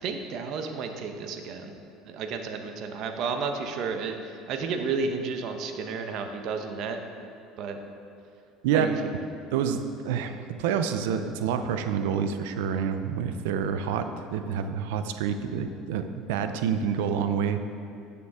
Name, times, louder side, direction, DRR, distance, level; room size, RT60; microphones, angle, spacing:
voice 1, 0.0-1.7 2.1-7.0 7.6-7.8 8.7-8.9, right 5 dB, 60° right, 6 dB, 0.9 m, -32 dB
voice 2, 9.5-17.6, right 7 dB, 85° right, 8 dB, 0.5 m, -28 dB
11.5 x 6.9 x 3.6 m, 2.5 s
supercardioid pair, 105°, 0 cm